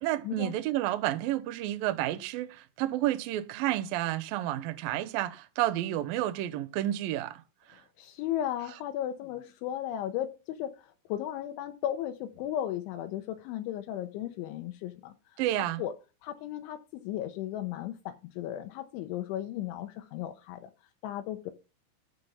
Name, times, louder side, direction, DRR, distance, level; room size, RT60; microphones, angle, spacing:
voice 1, 0.0-7.4 7.7-7.8 15.4-15.8, right 14 dB, 85° right, 2.0 m, -30 dB
voice 2, 8.0-15.1 15.6-15.9 16.2-20.7 21.0-21.5, left 11 dB, 80° left, 3.1 m, -35 dB
14.0 x 5.1 x 5.7 m
omnidirectional pair, 5.6 m